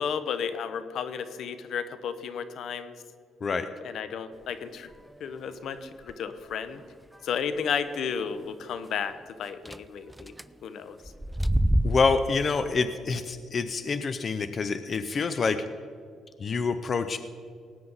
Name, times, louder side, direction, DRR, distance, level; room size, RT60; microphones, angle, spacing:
voice 1, 0.0-2.9 3.8-4.9 5.2-6.8 7.2-10.3 10.6-11.0, left 7 dB, 70° left, 12 dB, 0.9 m, -33 dB
sound 1, 5.8-6.1 6.8-6.9 7.1-7.2 7.6-7.7 9.7-9.8 10.1-10.4 11.0-12.4, right 1 dB, 5° right, 0.4 m, -26 dB
voice 2, 11.8-15.6 16.4-17.2, left 4 dB, 45° left, 10 dB, 0.6 m, -27 dB
19.0 x 9.4 x 4.0 m, 2.3 s
cardioid pair, 90°, 0 cm